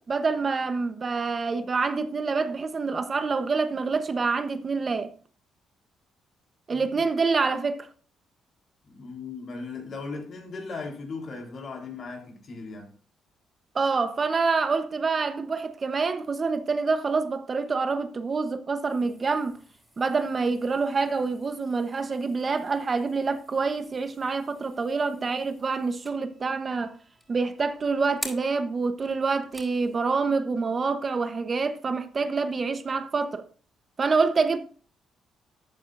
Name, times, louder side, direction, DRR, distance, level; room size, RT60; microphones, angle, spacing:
voice 1, 0.1-5.1 6.7-7.9 13.7-19.6 20.0-27.0 27.3-33.4 34.0-34.6, right 4 dB, 35° right, 0.9 m, -26 dB
voice 2, 6.7-7.0 8.8-12.9, left 4 dB, 55° left, 3.7 m, -38 dB
sound 1, 18.9-30.0, equal, 5° right, 4.3 m, -47 dB
13.0 x 8.7 x 2.6 m
cardioid pair, 90°, 0 cm